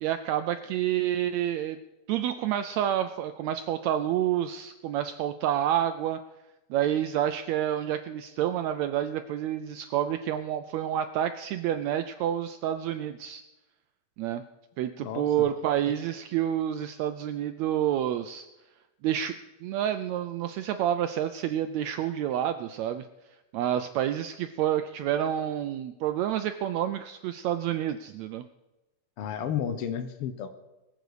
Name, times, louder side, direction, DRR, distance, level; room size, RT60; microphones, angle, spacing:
voice 1, 0.0-1.8 2.1-6.2 6.7-13.4 14.2-14.4 14.8-18.5 19.0-23.1 23.5-28.4, right 11 dB, 85° right, 10 dB, 1.5 m, -29 dB
voice 2, 15.0-15.5 29.2-30.5, left 8 dB, 70° left, 8 dB, 1.3 m, -32 dB
23.0 x 8.1 x 4.9 m, 1.0 s
omnidirectional pair, 3.8 m